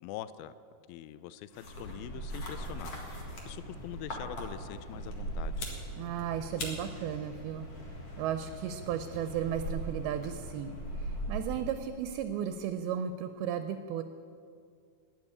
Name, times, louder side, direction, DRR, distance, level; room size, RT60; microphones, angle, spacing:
voice 1, 0.0-0.5 0.9-5.7, left 12 dB, 80° left, 15 dB, 2.3 m, -44 dB
sound 1, 1.5-11.9, right 1 dB, 45° left, 2.4 m, -40 dB
voice 2, 6.0-7.7 8.2-10.7 11.0-14.0, right 9 dB, 80° right, 9 dB, 2.5 m, -35 dB
12.0 x 9.1 x 9.7 m, 2.3 s
omnidirectional pair, 4.6 m